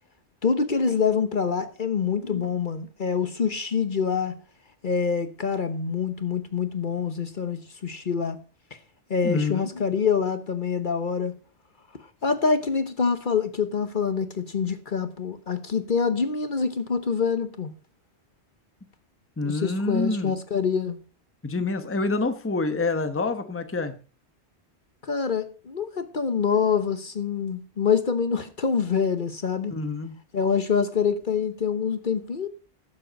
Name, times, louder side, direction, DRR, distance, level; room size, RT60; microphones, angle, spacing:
voice 1, 0.4-4.3 4.8-8.4 9.1-11.3 12.2-17.7 19.4-21.0 25.0-29.7 30.3-32.5, left 6 dB, 50° left, 1.1 m, -25 dB
voice 2, 9.2-9.7 19.4-20.4 21.4-23.9 29.7-30.1, left 3 dB, 15° left, 0.9 m, -27 dB
12.5 x 7.6 x 5.2 m
omnidirectional pair, 1.1 m